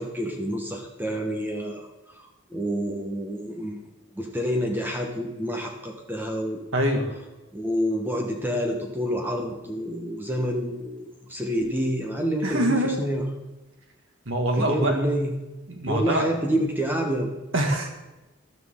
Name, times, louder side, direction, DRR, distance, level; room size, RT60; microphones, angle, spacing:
voice 1, 0.0-1.9 2.1-3.8 4.1-6.6 7.5-13.2 14.6-15.3 15.9-17.3, equal, 10° right, 2 dB, 1.2 m, -28 dB
voice 2, 6.7-7.1 12.4-13.0 14.3-14.9 15.7-16.3 17.5-17.9, right 1 dB, 80° right, 3 dB, 2.1 m, -24 dB
13.5 x 12.0 x 3.7 m, 1.0 s
head